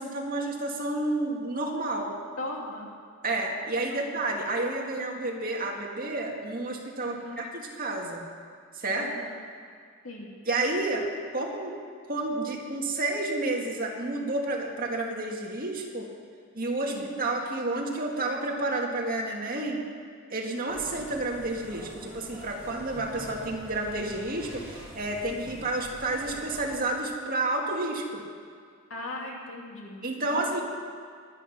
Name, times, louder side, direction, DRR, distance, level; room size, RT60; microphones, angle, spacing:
voice 1, 0.0-2.1 3.2-8.2 8.7-9.1 10.5-11.1 11.3-11.8 12.1-16.1 16.5-19.8 20.3-28.2 30.0-30.6, right 2 dB, 45° right, 0 dB, 2.2 m, -30 dB
voice 2, 2.3-3.0 3.9-4.1 4.8-4.9 7.0-7.4 9.0-9.4 10.0-10.3 16.9-17.1 25.5-25.7 28.9-30.5, left 2 dB, 70° left, -1 dB, 2.5 m, -39 dB
sound 1, 20.7-26.8, equal, 5° right, 5.2 m, -45 dB
22.5 x 9.2 x 6.0 m, 2.1 s
head